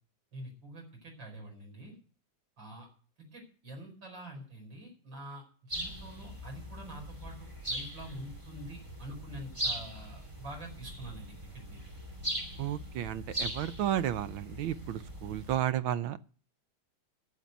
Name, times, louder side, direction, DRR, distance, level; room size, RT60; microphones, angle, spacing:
voice 1, 0.3-2.0 2.6-2.9 3.3-11.8, right 1 dB, 65° right, 1 dB, 5.5 m, -46 dB
sound 1, 5.7-15.6, right 1 dB, 15° right, 2.6 m, -40 dB
voice 2, 12.6-16.2, right 11 dB, 85° right, 13 dB, 1.6 m, -32 dB
11.5 x 7.5 x 9.3 m, 0.41 s
omnidirectional pair, 2.2 m